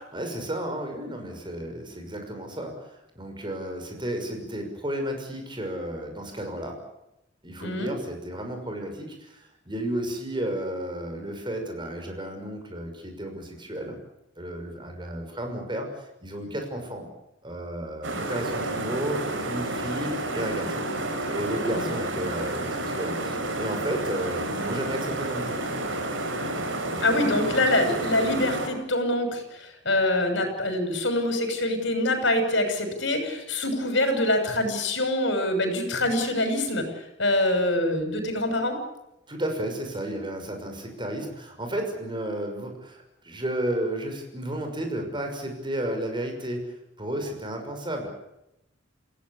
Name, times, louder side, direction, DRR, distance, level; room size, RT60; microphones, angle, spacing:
voice 1, 0.1-6.8 7.4-14.0 14.4-15.9 16.2-17.1 17.4-20.9 21.3-25.6 26.9-27.1 39.3-48.1, right 1 dB, 25° right, 4 dB, 6.1 m, -33 dB
voice 2, 7.6-7.9 21.7-21.8 27.0-36.9 37.2-38.8, left 1 dB, 70° left, 6 dB, 6.6 m, -25 dB
sound 1, 18.0-28.7, right 2 dB, 90° right, 4.8 m, -30 dB
27.5 x 17.0 x 8.5 m, 0.87 s
head